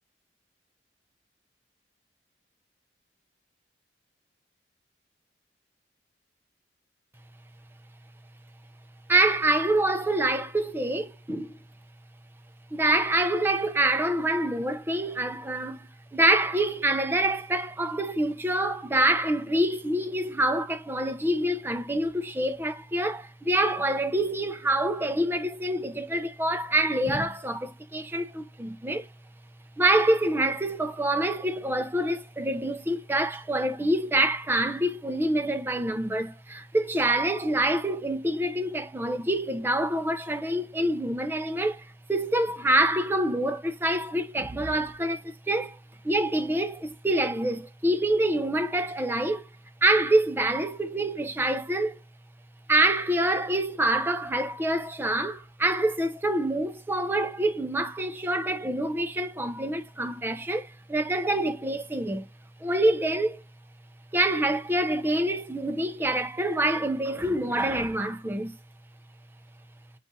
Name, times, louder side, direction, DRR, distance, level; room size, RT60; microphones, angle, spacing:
voice 1, 9.1-11.5 12.7-29.1 29.8-41.8 42.1-45.8 46.0-49.4 49.8-52.0 52.7-62.3 62.6-63.4 64.1-68.5, right 1 dB, 10° right, 0.5 m, -26 dB
7.1 x 2.4 x 2.6 m
head